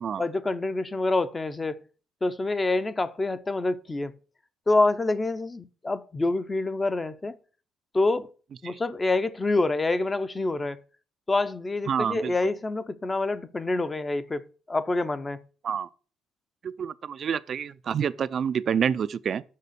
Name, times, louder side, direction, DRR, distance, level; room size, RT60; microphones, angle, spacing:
voice 1, 0.2-1.8 2.2-4.1 4.7-7.4 7.9-8.3 8.6-10.8 11.3-15.4, left 2 dB, 20° left, 0.6 m, -26 dB
voice 2, 11.9-12.3 15.6-15.9 16.6-19.4, right 7 dB, 45° right, 0.3 m, -28 dB
6.6 x 6.1 x 6.7 m
cardioid pair, 135°, 0 cm